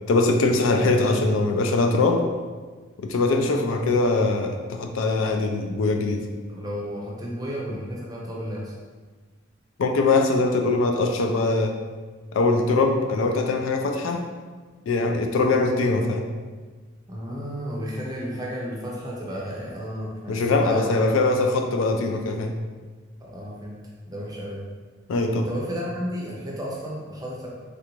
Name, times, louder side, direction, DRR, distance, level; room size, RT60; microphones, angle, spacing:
voice 1, 0.1-2.3 3.0-6.2 9.8-11.7 12.3-14.2 14.9-16.3 20.3-22.5 25.1-25.5, left 3 dB, 90° left, 4 dB, 0.4 m, -22 dB
voice 2, 6.5-8.7 17.1-20.9 23.2-23.8 24.1-24.7 25.4-27.5, equal, 20° right, -4 dB, 0.5 m, -33 dB
3.3 x 2.5 x 3.0 m, 1.4 s
head